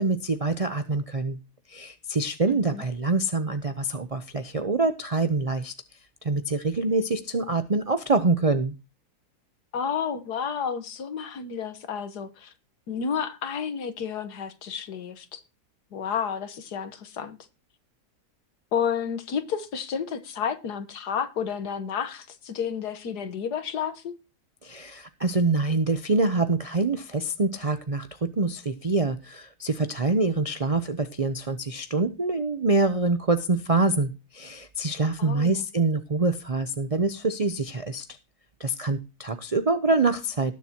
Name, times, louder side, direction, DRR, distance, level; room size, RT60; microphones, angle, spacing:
voice 1, 0.0-1.4 1.7-5.7 6.2-8.7 24.6-38.0 38.6-40.5, right 3 dB, 50° right, 0.4 m, -25 dB
voice 2, 2.5-2.8 9.7-12.5 12.9-15.4 15.9-17.4 18.7-24.1 35.2-35.6, left 7 dB, 75° left, 1.8 m, -31 dB
19.0 x 7.3 x 2.9 m
omnidirectional pair, 1.7 m